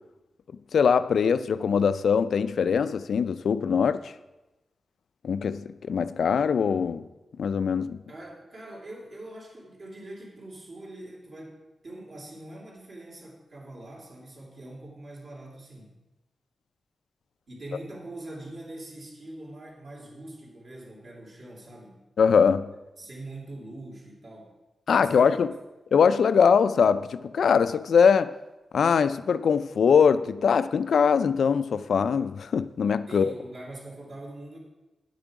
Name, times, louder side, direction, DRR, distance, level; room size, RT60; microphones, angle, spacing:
voice 1, 0.7-4.1 5.2-7.0 7.4-8.0 22.2-22.7 24.9-25.5 25.9-28.3 28.7-33.3, left 6 dB, 70° left, 0.4 m, -22 dB
voice 2, 8.1-11.6 11.8-16.0 17.5-22.1 23.0-24.5 24.9-25.4 33.1-34.6, right 1 dB, 50° right, 2.9 m, -43 dB
10.0 x 8.9 x 4.8 m
wide cardioid pair, 165°, 0 cm